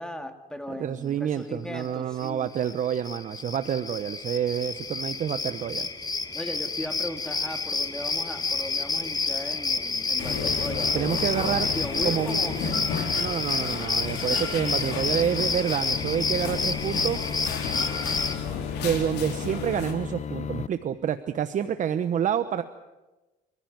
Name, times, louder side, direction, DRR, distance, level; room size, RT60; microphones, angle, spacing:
voice 1, 0.0-2.5 6.3-12.8 21.6-21.7, left 1 dB, 5° left, 7 dB, 2.4 m, -37 dB
voice 2, 0.8-5.9 10.9-11.7 12.0-12.4 13.2-17.2 18.8-22.6, right 9 dB, 50° right, 11 dB, 1.0 m, -28 dB
sound 1, 2.2-2.3 2.5-18.4, left 4 dB, 25° left, 1.5 m, -29 dB
sound 2, 10.2-19.9, left 6 dB, 85° left, 4.4 m, -34 dB
sound 3, 10.3-20.7, left 8 dB, 40° left, 0.9 m, -36 dB
27.0 x 15.5 x 9.4 m, 1.1 s
cardioid pair, 110°, 17 cm